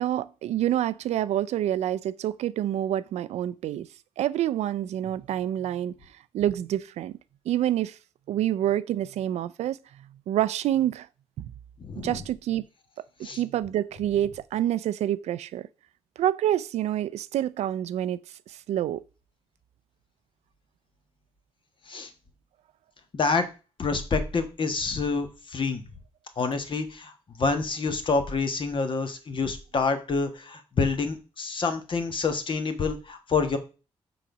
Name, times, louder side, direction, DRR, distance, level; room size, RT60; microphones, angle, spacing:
voice 1, 0.0-3.9 4.2-6.0 6.3-7.1 7.5-8.0 8.3-9.8 10.3-11.1 11.4-11.5 12.0-12.7 13.2-15.6 16.2-18.2 18.7-19.0, right 12 dB, 85° right, 0.4 m, -27 dB
voice 2, 11.8-12.2 13.2-13.4 21.9-22.1 23.1-23.5 23.8-25.8 26.4-27.1 27.4-33.6, left 4 dB, 50° left, 1.3 m, -27 dB
6.1 x 4.0 x 5.9 m
cardioid pair, 80°, 11 cm